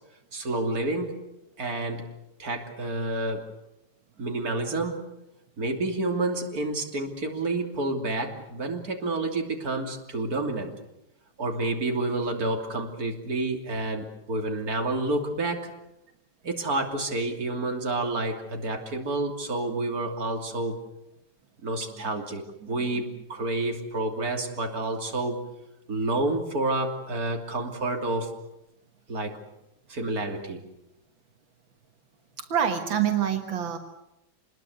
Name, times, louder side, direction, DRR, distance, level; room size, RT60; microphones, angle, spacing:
voice 1, 0.3-1.1 1.6-2.1 2.4-3.5 4.2-5.0 5.6-10.7 11.4-15.7 16.4-20.8 21.6-25.4 25.9-28.3 29.1-29.4 29.9-30.6, right 2 dB, 50° right, 3 dB, 3.5 m, -29 dB
voice 2, 32.4-33.8, right 9 dB, 85° right, 6 dB, 2.3 m, -26 dB
26.5 x 21.0 x 8.0 m, 0.86 s
omnidirectional pair, 2.1 m